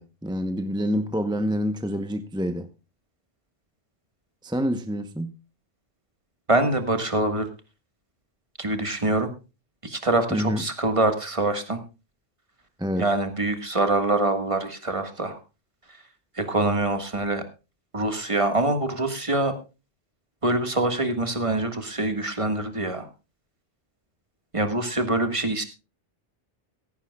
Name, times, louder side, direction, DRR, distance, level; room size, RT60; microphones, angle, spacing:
voice 1, 0.0-2.7 4.4-5.3 10.3-10.6 12.8-13.1, equal, 5° right, 0.7 m, -27 dB
voice 2, 6.5-7.5 8.6-9.3 9.8-11.8 13.0-15.4 16.3-17.4 17.9-19.5 20.4-23.1 24.5-25.6, right 2 dB, 30° right, 1.6 m, -24 dB
16.5 x 15.0 x 2.3 m
omnidirectional pair, 1.2 m